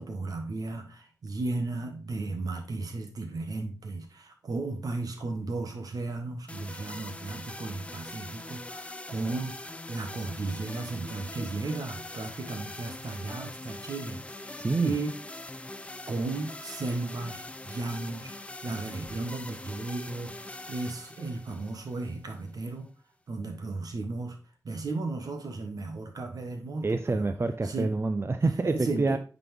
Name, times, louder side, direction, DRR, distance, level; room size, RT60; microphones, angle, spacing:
voice 1, 0.0-9.6 9.9-14.2 14.8-15.1 16.1-20.3 20.7-22.9 23.3-24.4 24.6-27.3 27.6-27.9 28.6-29.2, right 3 dB, 75° right, 1.4 m, -35 dB
sound 1, 6.5-22.5, left 2 dB, 20° left, 0.6 m, -42 dB
voice 2, 14.6-14.9 26.8-29.2, right 3 dB, 40° right, 0.6 m, -27 dB
9.1 x 4.0 x 3.5 m
cardioid pair, 55°, 6 cm